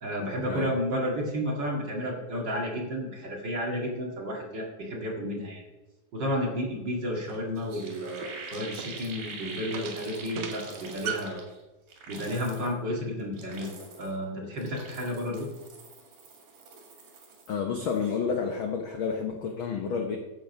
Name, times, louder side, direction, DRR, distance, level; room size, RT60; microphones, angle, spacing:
voice 1, 0.0-5.6 6.1-11.4 12.1-15.5, equal, 40° right, -1 dB, 2.3 m, -32 dB
sound 1, 7.3-11.4, right 9 dB, 70° right, 1.7 m, -39 dB
sound 2, 7.3-7.4 7.6-11.6 11.9-12.7 13.2-14.2 14.5-17.5 17.8-18.2, right 4 dB, 85° right, 4.0 m, -44 dB
voice 2, 17.5-20.2, left 6 dB, 70° left, 3 dB, 1.2 m, -30 dB
12.5 x 8.0 x 5.3 m, 1.1 s
omnidirectional pair, 3.5 m